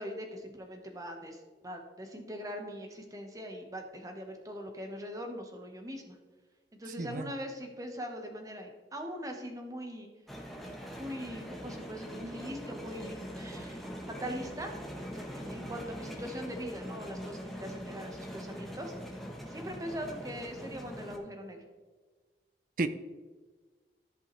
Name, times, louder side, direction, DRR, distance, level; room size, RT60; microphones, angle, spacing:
voice 1, 0.0-6.2 6.7-10.1 11.0-13.8 14.2-14.8 15.1-18.9 19.5-21.6, equal, 20° right, 3 dB, 1.1 m, -41 dB
voice 2, 7.0-7.3 12.2-12.4 22.8-22.9, right 3 dB, 50° right, 11 dB, 0.5 m, -33 dB
sound 1, 10.3-21.2, equal, ahead, 1.0 m, -42 dB
14.0 x 5.4 x 3.2 m, 1.4 s
head